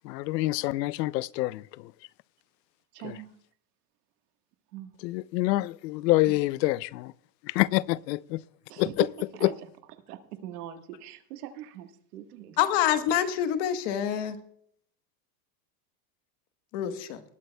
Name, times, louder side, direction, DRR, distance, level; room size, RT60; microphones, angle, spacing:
voice 1, 0.0-1.9 3.0-3.2 5.0-7.1 7.4-8.4 8.8-9.1 9.4-9.5, left 19 dB, 90° left, 0.6 m, -27 dB
voice 2, 2.9-3.3 4.7-4.9 5.5-5.6 8.7-9.1 9.4-9.5 10.1-12.6, right 12 dB, 70° right, 1.5 m, -41 dB
voice 3, 12.6-14.4 16.7-17.2, left 10 dB, 40° left, 1.2 m, -26 dB
20.0 x 12.0 x 2.2 m
supercardioid pair, 175°, 48 cm